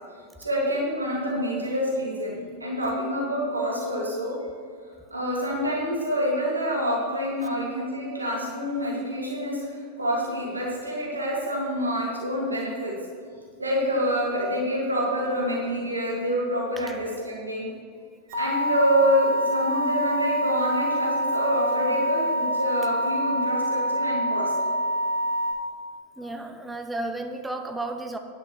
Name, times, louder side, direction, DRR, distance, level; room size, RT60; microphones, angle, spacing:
voice 1, 0.4-4.3 5.1-9.6 10.0-12.9 13.6-17.7 18.3-24.5, equal, 80° right, -4 dB, 2.6 m, -27 dB
sound 1, 18.3-25.5, equal, 45° right, 2.7 m, -26 dB
voice 2, 26.2-28.2, right 2 dB, 5° right, 5 dB, 0.8 m, -33 dB
10.5 x 5.9 x 6.6 m, 2.1 s
figure-of-eight pair, 90°, 0 cm